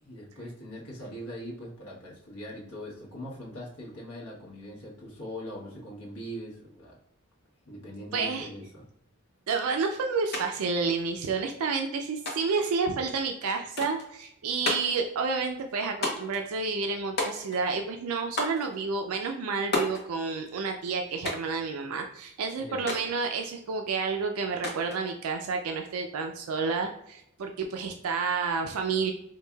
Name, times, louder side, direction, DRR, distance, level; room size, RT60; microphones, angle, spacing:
voice 1, 0.0-7.0 7.7-8.8 22.6-22.9, equal, 80° left, -4 dB, 1.2 m, -41 dB
voice 2, 8.1-8.5 9.5-29.1, right 4 dB, 70° right, 4 dB, 0.4 m, -30 dB
sound 1, 10.3-10.5 10.7-11.5 12.3-12.7 13.8-14.1 14.6-15.0 16.0-16.4 17.2-17.7 18.4-18.7 19.7-20.1 21.2-21.6 22.9-23.1 24.6-25.0, left 2 dB, 50° left, 0.9 m, -32 dB
4.6 x 2.6 x 2.3 m, 0.75 s
head